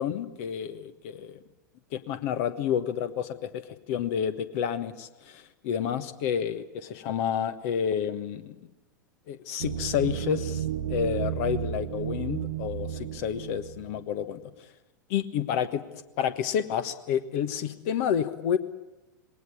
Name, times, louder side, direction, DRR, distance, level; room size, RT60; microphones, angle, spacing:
voice 1, 0.0-1.4 1.9-3.6 3.9-8.6 9.3-10.6 10.9-14.4 15.1-15.8 16.2-18.6, left 8 dB, 50° left, 12 dB, 1.3 m, -29 dB
sound 1, 9.6-14.1, right 11 dB, 65° right, 0.7 m, -33 dB
20.0 x 18.0 x 9.7 m, 1.0 s
figure-of-eight pair, 90°, 10 cm